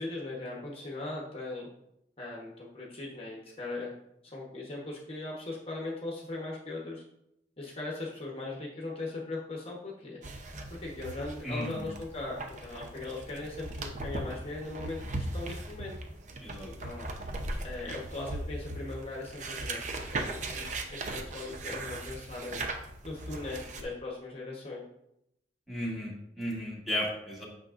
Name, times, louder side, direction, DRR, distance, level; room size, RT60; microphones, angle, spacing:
voice 1, 0.0-1.7 2.2-3.9 4.2-7.0 7.6-10.2 10.7-16.0 16.6-17.1 17.6-22.6 23.0-24.8, left 2 dB, 35° left, -3 dB, 1.0 m, -39 dB
sound 1, 10.2-23.8, right 2 dB, 40° right, 0.7 m, -39 dB
voice 2, 11.4-11.9 16.4-16.7 25.7-27.4, left 1 dB, ahead, -4 dB, 1.5 m, -34 dB
8.7 x 5.9 x 2.5 m, 0.81 s
head